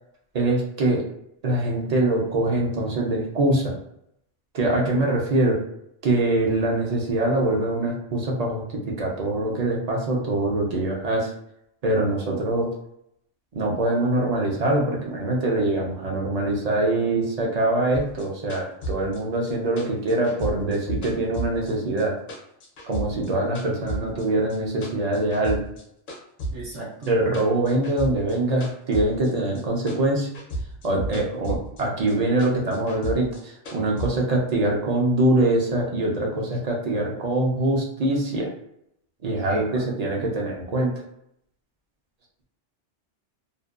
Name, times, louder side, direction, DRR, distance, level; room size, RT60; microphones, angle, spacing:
voice 1, 0.3-1.0 1.4-3.7 4.5-5.6 6.0-11.3 11.8-12.7 13.5-22.1 22.8-25.6 27.1-30.3 30.8-38.5 39.2-40.9, right 2 dB, 50° right, -2 dB, 0.5 m, -23 dB
voice 2, 4.6-5.1 26.5-27.1 39.5-39.8, right 3 dB, 75° right, -6 dB, 1.0 m, -36 dB
sound 1, 17.9-22.0 22.3-24.2 24.5-25.8 26.1-29.6 29.9-31.8 32.1-34.1, right 1 dB, 55° left, 0.6 m, -33 dB
2.6 x 2.1 x 2.3 m, 0.76 s
omnidirectional pair, 1.2 m